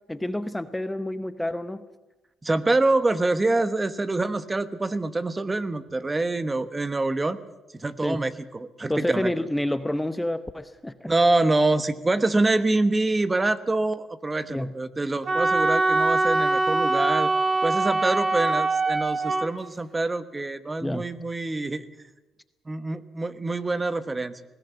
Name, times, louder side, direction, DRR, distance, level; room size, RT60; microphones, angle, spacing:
voice 1, 0.1-1.8 8.0-8.3 8.9-11.1 14.5-14.7 20.8-21.1, left 1 dB, 10° left, 12 dB, 0.8 m, -29 dB
voice 2, 2.4-7.4 7.7-9.3 11.0-17.3 17.6-21.9 22.7-24.4, right 2 dB, 20° right, 13 dB, 1.2 m, -25 dB
Wind instrument woodwind instrument, 15.3-19.5, right 3 dB, 45° right, 2.1 m, -23 dB
20.0 x 17.0 x 8.3 m, 1.1 s
cardioid pair, 90°, 0 cm